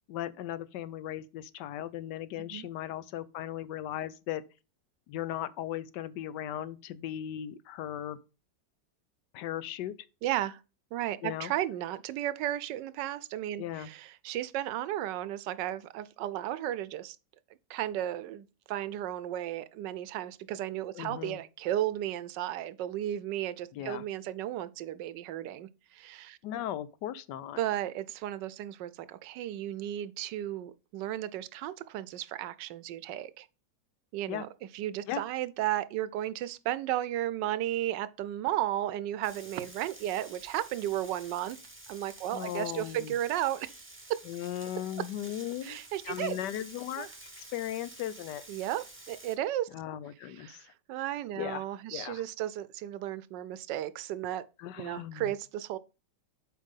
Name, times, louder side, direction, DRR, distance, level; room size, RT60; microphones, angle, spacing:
voice 1, 0.1-4.4 5.1-8.2 9.3-9.9 11.2-11.5 13.6-13.9 20.9-21.4 23.7-24.0 26.4-27.6 34.3-34.4 35.1-35.2 42.3-43.2 44.3-45.8 46.0-47.1 47.4-48.4 49.7-50.6 51.4-51.6 51.9-52.2 54.6-55.3, left 11 dB, 75° left, 1.2 m, -37 dB
voice 2, 10.2-10.6 10.9-17.2 17.7-26.4 27.6-33.5 34.1-41.6 41.9-43.7 45.6-46.4 47.0-47.1 48.5-49.7 50.2-50.6 50.9-54.4 54.8-55.8, right 12 dB, 80° right, 1.2 m, -34 dB
Frying (food), 39.2-49.4, right 2 dB, 10° right, 0.8 m, -50 dB
7.3 x 4.8 x 5.4 m
omnidirectional pair, 1.9 m